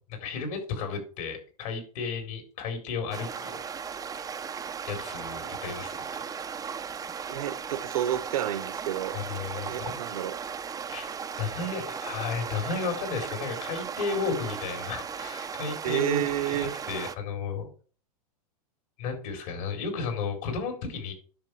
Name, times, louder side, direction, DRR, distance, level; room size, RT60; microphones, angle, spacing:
voice 1, 0.1-3.6 4.9-6.2 9.1-10.0 10.9-11.1 11.4-16.2 16.5-17.7 19.0-21.1, left 4 dB, 60° left, 4.4 m, -33 dB
sound 1, 3.1-17.1, right 6 dB, 20° right, 0.9 m, -36 dB
voice 2, 7.3-9.2 9.7-10.3 15.8-16.7, right 12 dB, 70° right, 1.5 m, -30 dB
10.5 x 6.7 x 4.9 m
hypercardioid pair, 110°, 19 cm